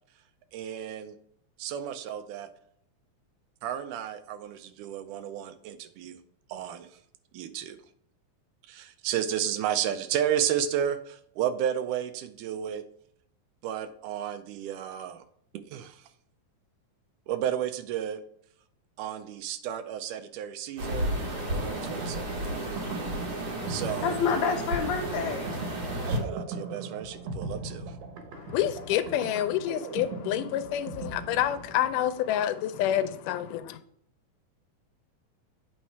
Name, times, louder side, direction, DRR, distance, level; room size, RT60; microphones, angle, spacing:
voice 1, 0.5-1.2 1.6-2.5 3.6-6.2 6.5-6.9 7.3-7.8 8.7-12.8 13.6-15.2 15.5-16.1 17.3-18.2 19.0-21.1 21.5-22.5 23.7-24.2 26.1-27.9, right 10 dB, 80° right, 2.2 m, -32 dB
sound 1, 20.8-26.2, right 1 dB, 40° right, 1.5 m, -32 dB
sound 2, 21.6-32.1, right 3 dB, 65° right, 2.2 m, -40 dB
voice 2, 24.0-25.5, left 6 dB, 70° left, 2.0 m, -28 dB
voice 3, 28.3-33.8, left 11 dB, 90° left, 2.2 m, -28 dB
8.5 x 3.7 x 4.6 m
omnidirectional pair, 3.6 m